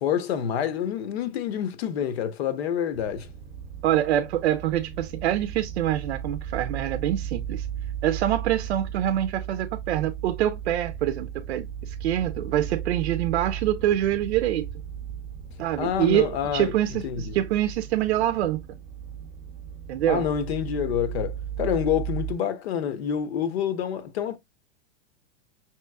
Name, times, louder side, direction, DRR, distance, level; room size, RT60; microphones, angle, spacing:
voice 1, 0.0-3.3 15.8-16.7 17.0-17.4 20.1-24.4, left 9 dB, 70° left, 0.8 m, -27 dB
sound 1, 2.9-22.3, right 9 dB, 25° right, 0.6 m, -36 dB
voice 2, 3.8-7.7 8.0-14.7 15.6-18.6 19.9-20.2, right 12 dB, 80° right, 0.6 m, -25 dB
5.6 x 3.0 x 2.2 m
supercardioid pair, 140°, 32 cm